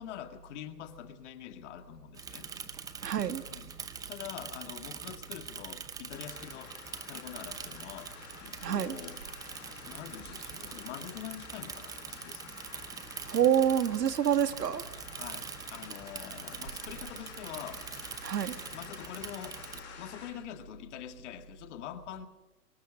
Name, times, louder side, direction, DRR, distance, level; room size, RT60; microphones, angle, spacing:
voice 1, 0.0-2.5 3.5-3.8 4.1-6.8 7.1-9.2 9.8-12.6 15.1-17.9 18.7-22.3, left 11 dB, 45° left, 2.1 m, -45 dB
Bicycle / Mechanisms, 2.1-19.8, right 6 dB, 10° right, 0.8 m, -44 dB
voice 2, 3.0-3.4 8.6-9.0 13.3-14.9 18.2-18.5, right 9 dB, 80° right, 1.7 m, -27 dB
sound 1, 6.1-20.3, left 6 dB, 30° left, 6.1 m, -50 dB
25.0 x 12.5 x 9.6 m
hypercardioid pair, 135°, 48 cm